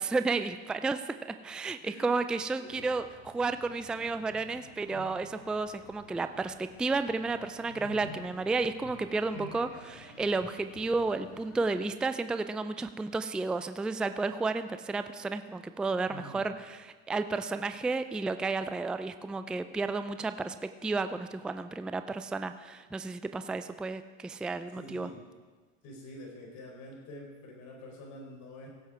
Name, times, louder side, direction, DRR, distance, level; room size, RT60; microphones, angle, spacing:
voice 1, 0.0-25.1, right 3 dB, 5° right, 10 dB, 0.3 m, -32 dB
sound 1, 2.7-11.8, left 3 dB, 80° left, 4.5 m, -52 dB
voice 2, 7.7-8.1 16.1-16.6 24.8-25.2 25.8-28.7, equal, 55° left, 0 dB, 4.2 m, -47 dB
16.5 x 7.8 x 4.9 m, 1.4 s
hypercardioid pair, 100°, 34 cm